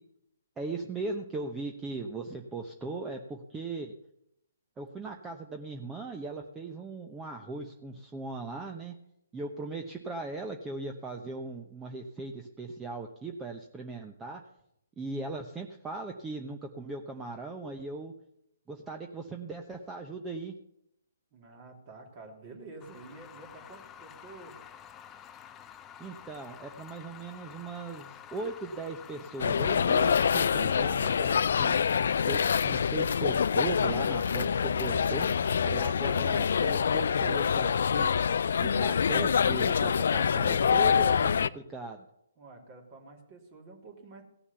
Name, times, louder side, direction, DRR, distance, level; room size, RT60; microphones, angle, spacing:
voice 1, 0.6-3.9 4.8-8.9 9.3-14.4 15.0-18.1 18.7-20.5 26.0-31.7 32.3-38.1 38.6-42.0, right 3 dB, 15° right, 3 dB, 0.9 m, -38 dB
voice 2, 21.3-24.6 42.4-44.2, right 3 dB, 35° right, 1 dB, 3.0 m, -49 dB
sound 1, 22.8-29.8, left 9 dB, 20° left, 0.7 m, -49 dB
sound 2, 29.4-41.5, left 7 dB, 60° left, 0.4 m, -26 dB
16.5 x 7.0 x 6.9 m, 0.78 s
figure-of-eight pair, 130°, 0 cm